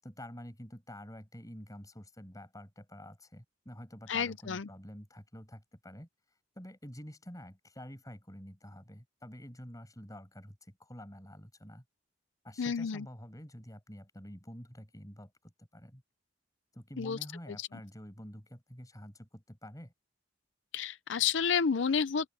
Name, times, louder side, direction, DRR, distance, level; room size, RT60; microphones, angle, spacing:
voice 1, 0.0-11.8 12.4-16.0 16.7-19.9, equal, 20° left, 7.9 m, -48 dB
voice 2, 4.1-4.7 12.6-13.0 17.0-17.2 17.6-17.7 20.7-22.3, left 6 dB, 70° left, 0.5 m, -30 dB
open air
head